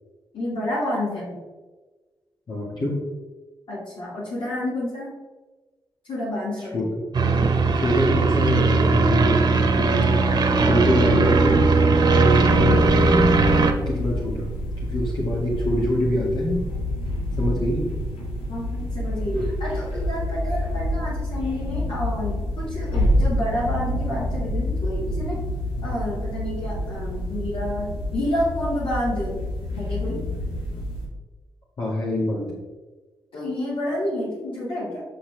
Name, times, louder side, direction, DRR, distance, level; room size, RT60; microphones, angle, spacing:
voice 1, 0.3-1.4 3.7-5.1 6.0-6.9 18.5-19.3 19.6-25.4 25.8-29.4 29.7-30.2 33.3-35.0, left 1 dB, 75° left, -8 dB, 2.6 m, -29 dB
voice 2, 2.5-3.0 6.7-7.0 7.7-10.1 10.6-11.6 12.1-13.4 13.9-14.5 14.8-16.6 17.4-17.9 19.3-19.5 25.8-25.9 31.8-32.6, left 1 dB, 55° left, -6 dB, 2.1 m, -25 dB
sound 1, 7.1-13.7, right 3 dB, 50° right, 1.0 m, -18 dB
sound 2, 12.4-31.1, left 1 dB, 90° left, 1.8 m, -28 dB
8.3 x 6.1 x 3.4 m, 1.2 s
cardioid pair, 60°, 9 cm